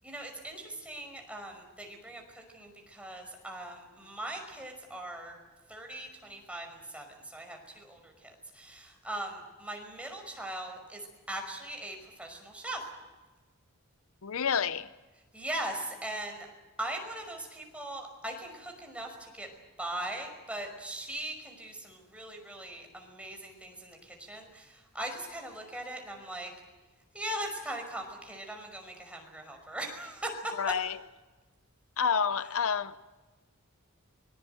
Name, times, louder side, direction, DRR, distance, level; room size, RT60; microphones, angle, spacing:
voice 1, 0.0-5.4 5.7-12.9 15.3-16.5 16.8-19.5 19.8-26.5 27.1-30.7, right 1 dB, 5° right, 5.5 m, -40 dB
voice 2, 14.2-14.9 30.6-31.0 32.0-33.0, left 6 dB, 70° left, 0.7 m, -29 dB
25.0 x 21.5 x 7.9 m
head